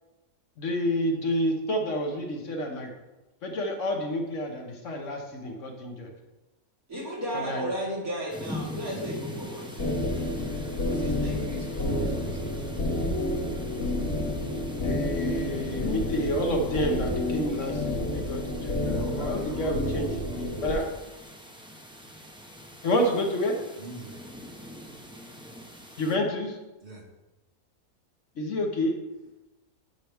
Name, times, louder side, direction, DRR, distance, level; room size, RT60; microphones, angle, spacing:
voice 1, 0.6-2.9 3.4-6.1 7.3-7.7 14.8-18.8 19.2-20.2 20.6-20.9 22.8-23.6 26.0-26.6 28.4-28.9, equal, 60° left, 2 dB, 1.3 m, -29 dB
voice 2, 6.9-9.9 10.8-12.5, equal, 75° right, -6 dB, 3.0 m, -35 dB
sound 1, 8.3-26.2, equal, 5° right, 0.6 m, -43 dB
sound 2, 9.8-20.7, left 1 dB, 80° left, 2.6 m, -30 dB
voice 3, 18.7-20.9 23.8-24.2 26.8-27.0, right 2 dB, 45° right, -5 dB, 2.6 m, -42 dB
10.5 x 5.8 x 3.5 m, 1.1 s
omnidirectional pair, 1.5 m